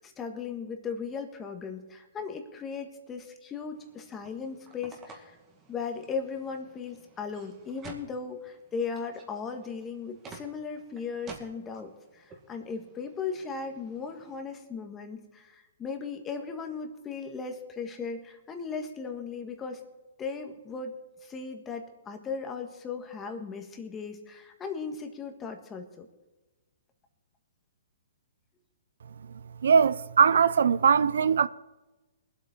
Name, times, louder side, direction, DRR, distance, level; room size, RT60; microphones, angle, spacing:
voice 1, 0.0-5.4 5.7-19.8 20.2-26.1, left 5 dB, 15° left, 1.6 m, -37 dB
sound 1, 3.7-14.4, right 4 dB, 20° right, 2.2 m, -52 dB
voice 2, 29.6-31.5, right 6 dB, 75° right, 0.5 m, -21 dB
21.5 x 8.2 x 4.4 m
hypercardioid pair, 150°, 0 cm